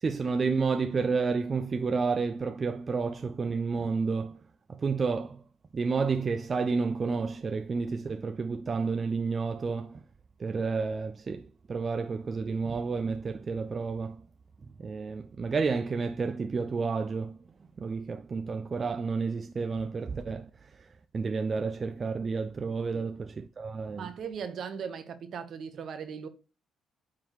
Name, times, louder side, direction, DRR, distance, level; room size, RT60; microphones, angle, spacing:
voice 1, 0.0-4.4 4.7-5.4 5.7-10.0 10.4-14.3 14.8-17.4 17.8-24.1, right 4 dB, 40° right, 0.4 m, -30 dB
voice 2, 24.0-26.3, right 7 dB, 65° right, 1.1 m, -38 dB
9.2 x 3.7 x 3.1 m
cardioid pair, 90°, 0 cm